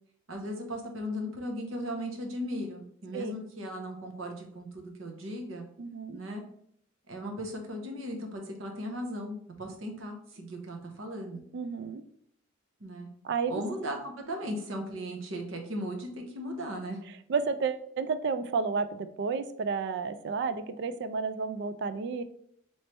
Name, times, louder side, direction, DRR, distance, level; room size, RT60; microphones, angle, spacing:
voice 1, 0.3-5.7 6.1-6.4 7.1-11.4 12.8-13.1 13.5-17.0, equal, 75° right, 3 dB, 0.9 m, -37 dB
voice 2, 5.8-6.2 11.5-12.0 13.2-13.6 17.3-22.2, right 5 dB, 55° right, 11 dB, 0.3 m, -31 dB
3.2 x 3.2 x 4.3 m, 0.67 s
head